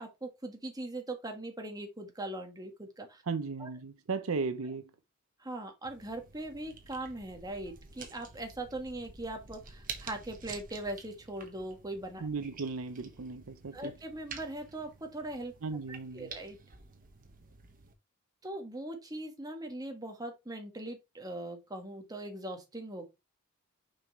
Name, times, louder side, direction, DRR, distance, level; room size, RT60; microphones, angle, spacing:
voice 1, 0.0-3.2 3.6-3.7 5.4-12.3 13.7-15.5 15.9-16.6 18.4-23.0, right 1 dB, 20° right, 1.6 m, -40 dB
voice 2, 3.3-4.9 12.2-13.9 15.6-16.3, right 4 dB, 80° right, 0.7 m, -36 dB
sound 1, 5.8-17.9, right 5 dB, 40° right, 1.3 m, -49 dB
6.2 x 5.5 x 3.2 m
head